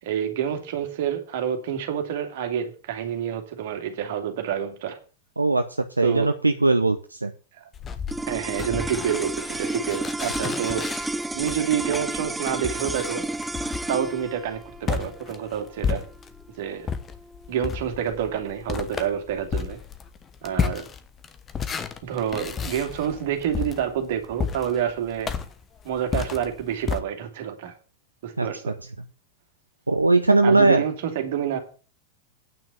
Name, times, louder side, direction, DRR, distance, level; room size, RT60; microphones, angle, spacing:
voice 1, 0.0-5.0 6.0-6.3 8.3-10.9 11.3-13.2 13.9-16.0 16.6-16.9 17.5-19.8 20.4-20.8 22.0-25.3 25.8-27.7 28.2-28.7 30.4-31.6, right 9 dB, 55° right, 5 dB, 2.5 m, -28 dB
voice 2, 6.0-7.3 28.4-28.5 29.9-30.8, right 2 dB, 80° right, 8 dB, 0.7 m, -19 dB
sound 1, 7.7-16.5 16.8-27.0, left 6 dB, 20° left, 1.2 m, -32 dB
sound 2, 8.1-18.5, right 2 dB, 5° right, 0.4 m, -32 dB
9.2 x 6.0 x 8.3 m, 0.38 s
figure-of-eight pair, 90°, 0 cm